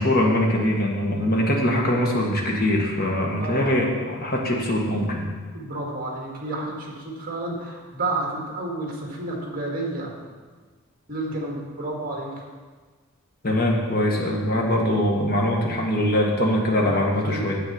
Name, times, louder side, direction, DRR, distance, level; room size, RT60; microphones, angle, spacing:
voice 1, 0.0-5.3 13.4-17.6, left 1 dB, 45° left, -1 dB, 1.5 m, -22 dB
voice 2, 3.4-3.8 5.5-10.1 11.1-12.3 16.7-17.4, right 2 dB, 40° right, -1 dB, 1.9 m, -30 dB
9.3 x 7.7 x 4.3 m, 1.4 s
head